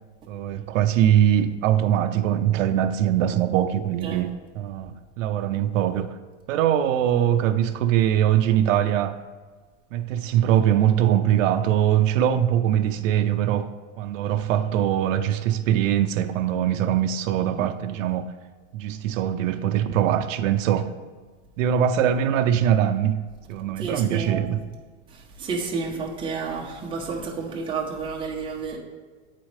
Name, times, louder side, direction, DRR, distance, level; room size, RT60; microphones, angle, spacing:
voice 1, 0.3-6.2 6.5-9.2 9.9-13.7 14.0-18.3 18.7-20.9 21.6-23.2 23.5-24.6, right 10 dB, 85° right, 10 dB, 0.5 m, -22 dB
voice 2, 23.7-24.5 25.1-28.8, right 4 dB, 15° right, -2 dB, 0.7 m, -31 dB
8.1 x 4.1 x 3.2 m, 1.4 s
supercardioid pair, 150°, 38 cm